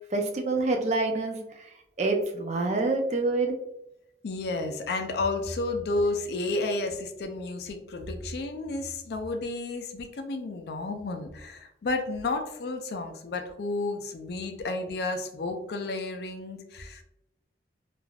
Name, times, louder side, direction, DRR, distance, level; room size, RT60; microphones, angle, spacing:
voice 1, 0.1-1.7 2.0-3.6, right 3 dB, 40° right, 3 dB, 0.4 m, -27 dB
voice 2, 4.2-17.0, left 2 dB, 60° left, 6 dB, 0.4 m, -31 dB
3.3 x 2.4 x 2.3 m, 0.84 s
head